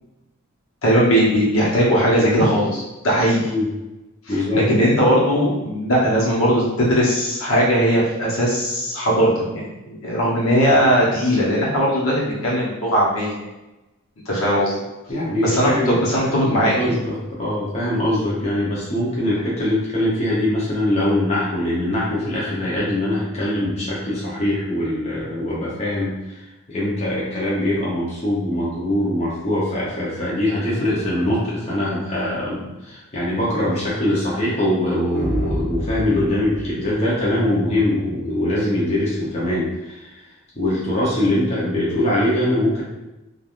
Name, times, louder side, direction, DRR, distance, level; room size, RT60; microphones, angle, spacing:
voice 1, 0.8-3.5 4.3-13.3 14.3-14.7 15.4-16.7, equal, 75° left, -5 dB, 1.0 m, -19 dB
voice 2, 4.3-4.6 15.1-26.4 26.7-40.2 40.5-42.8, left 1 dB, 30° left, -7 dB, 0.7 m, -22 dB
sound 1, 35.1-37.6, equal, 45° left, 1.1 m, -29 dB
3.2 x 2.4 x 2.4 m, 1.0 s
head